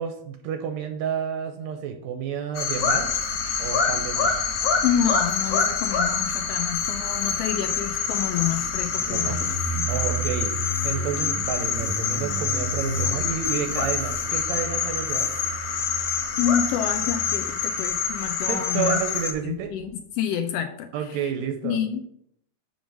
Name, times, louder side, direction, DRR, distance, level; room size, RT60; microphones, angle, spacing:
voice 1, 0.0-3.1 3.6-4.4 9.1-9.4 9.9-10.5 10.8-15.3 18.4-19.7 20.9-21.8, right 8 dB, 80° right, 5 dB, 1.8 m, -30 dB
sound 1, 2.5-19.3, left 6 dB, 65° left, 1.7 m, -26 dB
Motorcycle, 2.7-19.9, right 3 dB, 65° right, 0.7 m, -35 dB
voice 2, 4.8-9.9 13.0-13.2 16.4-19.0 19.4-19.9 20.2-21.3 21.6-22.0, left 9 dB, 90° left, 6 dB, 1.4 m, -28 dB
5.2 x 5.1 x 6.0 m, 0.71 s
omnidirectional pair, 3.3 m